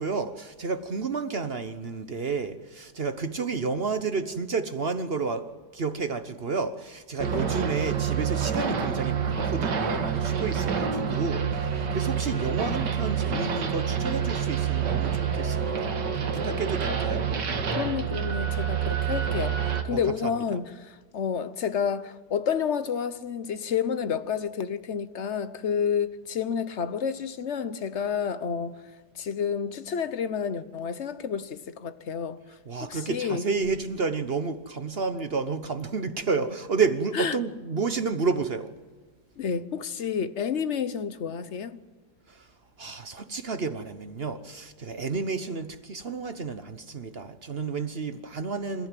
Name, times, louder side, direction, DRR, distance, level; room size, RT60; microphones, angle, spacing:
voice 1, 0.0-5.5 5.7-15.9 16.3-17.2 19.9-20.6 32.7-38.7 42.8-48.9, right 4 dB, 40° right, 1.0 m, -31 dB
voice 2, 7.2-7.6 16.9-17.0 17.8-19.6 19.8-28.7 29.2-32.4 32.8-33.5 37.1-37.4 39.4-41.8, left 7 dB, 45° left, 1.1 m, -30 dB
sound 1, 7.2-19.8, right 7 dB, 85° right, 2.3 m, -27 dB
27.5 x 15.0 x 9.1 m
omnidirectional pair, 1.8 m